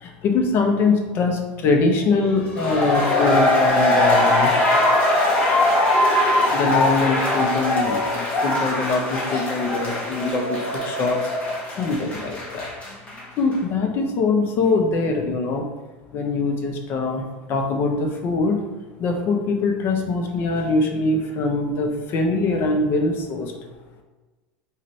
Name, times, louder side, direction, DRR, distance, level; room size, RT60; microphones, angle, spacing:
voice 1, 0.0-4.5 6.5-11.2 11.8-12.7 13.4-15.6 16.1-17.2 17.5-18.6 19.0-23.5, left 3 dB, 40° left, 3 dB, 0.7 m, -23 dB
sound 1, 2.4-13.2 13.5-13.6, left 1 dB, 25° left, 1.2 m, -21 dB
4.0 x 2.6 x 3.2 m, 1.2 s
supercardioid pair, 135°, 5 cm